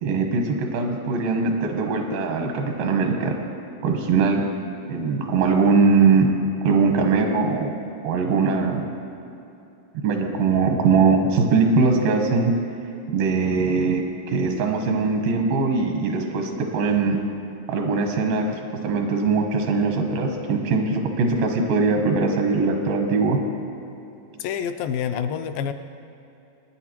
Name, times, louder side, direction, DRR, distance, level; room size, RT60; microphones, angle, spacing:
voice 1, 0.0-3.4 3.8-4.4 4.9-6.3 6.6-7.7 8.0-8.9 9.9-12.5 13.1-14.0 14.3-17.2 17.7-18.5 18.8-23.4, right 4 dB, 85° right, 3 dB, 2.8 m, -21 dB
voice 2, 24.4-25.7, left 8 dB, 80° left, 9 dB, 2.2 m, -27 dB
21.5 x 9.8 x 3.0 m, 2.8 s
omnidirectional pair, 4.1 m